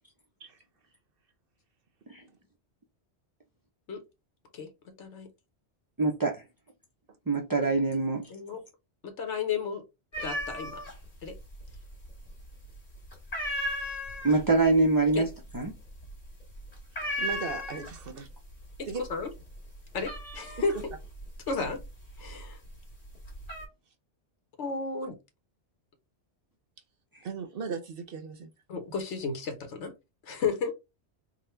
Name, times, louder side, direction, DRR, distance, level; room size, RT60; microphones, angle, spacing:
voice 1, 5.0-5.3 8.3-8.6 9.0-9.8 10.2-10.8 11.2-11.4 15.1-15.2 18.8-19.3 19.9-20.9 21.5-21.8 22.2-22.6 24.6-25.1 28.7-29.9 30.3-30.7, left 4 dB, 85° left, 1.3 m, -33 dB
voice 2, 6.0-6.4 7.3-8.2 14.2-15.3 15.5-15.7, right 3 dB, 30° right, 0.4 m, -24 dB
sound 1, 10.1-11.0 11.3-12.0 12.4-12.8 13.1-18.2 18.5-19.1 19.4-22.5 23.0-23.7, equal, 45° left, 1.9 m, -35 dB
voice 3, 16.9-18.3 18.9-19.0 27.2-28.5, right 5 dB, 60° right, 0.8 m, -37 dB
3.8 x 2.1 x 4.3 m
omnidirectional pair, 1.2 m